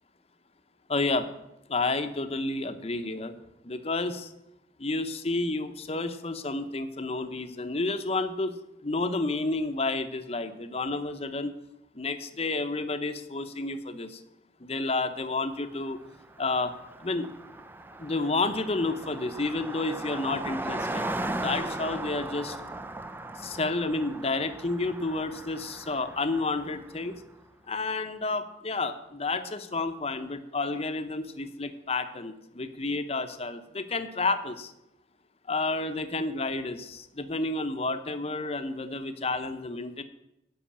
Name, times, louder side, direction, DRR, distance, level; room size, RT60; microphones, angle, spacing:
voice 1, 0.9-1.3 1.7-3.4 3.6-4.3 4.8-8.5 8.8-11.5 11.9-14.2 14.6-16.0 16.4-16.7 17.0-17.3 18.0-21.0 21.3-22.6 23.4-27.2 27.7-34.7 35.5-40.0, left 3 dB, 35° left, 9 dB, 0.8 m, -30 dB
Car passing by, 15.9-16.0 16.2-27.2, right 2 dB, 10° right, 0.5 m, -38 dB
11.0 x 5.8 x 8.6 m, 0.85 s
head